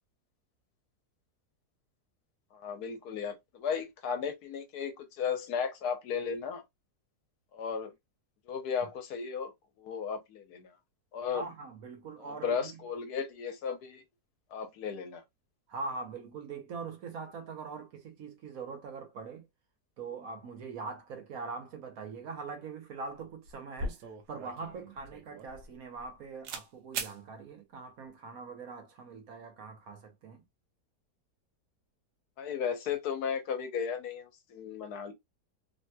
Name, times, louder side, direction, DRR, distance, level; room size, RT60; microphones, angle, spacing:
voice 1, 2.5-6.6 7.5-7.9 8.5-9.5 9.8-10.7 11.1-11.4 12.2-14.0 14.5-15.2 32.4-35.1, left 6 dB, 75° left, 1.2 m, -35 dB
voice 2, 11.3-12.7 15.7-19.5 20.0-24.0 24.3-30.4, right 4 dB, 65° right, 1.1 m, -42 dB
sound 1, 23.2-23.3 23.5-26.1 26.4-26.7 26.9-27.2, right 3 dB, 90° right, 1.2 m, -39 dB
3.3 x 2.8 x 2.2 m
omnidirectional pair, 1.7 m